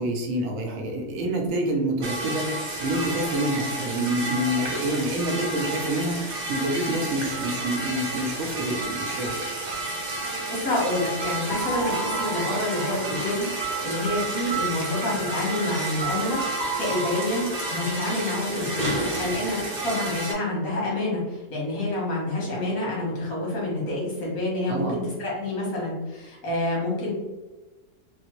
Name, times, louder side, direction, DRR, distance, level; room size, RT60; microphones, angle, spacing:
voice 1, 0.0-9.4 24.7-25.0, right 1 dB, 70° right, 1 dB, 1.0 m, -27 dB
sound 1, 2.0-20.3, right 2 dB, 45° right, 0.8 m, -31 dB
sound 2, 7.3-19.1, right 4 dB, 40° left, 0.7 m, -35 dB
voice 2, 10.5-27.1, left 1 dB, 85° left, -4 dB, 1.6 m, -28 dB
3.5 x 2.0 x 2.9 m, 1.2 s
omnidirectional pair, 1.5 m